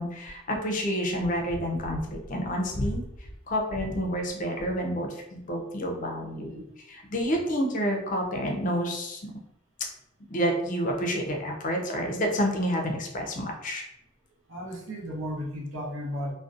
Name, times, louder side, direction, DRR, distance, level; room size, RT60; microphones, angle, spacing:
voice 1, 0.0-3.0 3.5-6.6 6.9-9.3 10.3-13.8, equal, 40° left, 1 dB, 0.5 m, -29 dB
voice 2, 14.5-16.3, equal, 70° right, -3 dB, 0.8 m, -34 dB
2.5 x 2.2 x 2.4 m, 0.83 s
head